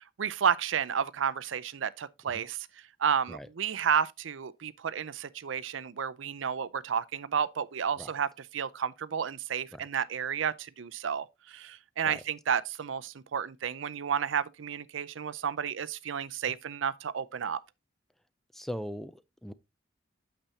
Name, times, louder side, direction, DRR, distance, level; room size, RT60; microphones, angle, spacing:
voice 1, 0.0-2.7 3.0-17.6, right 7 dB, 75° right, 0.5 m, -31 dB
voice 2, 18.5-19.5, equal, ahead, 0.4 m, -40 dB
8.8 x 6.8 x 2.8 m
head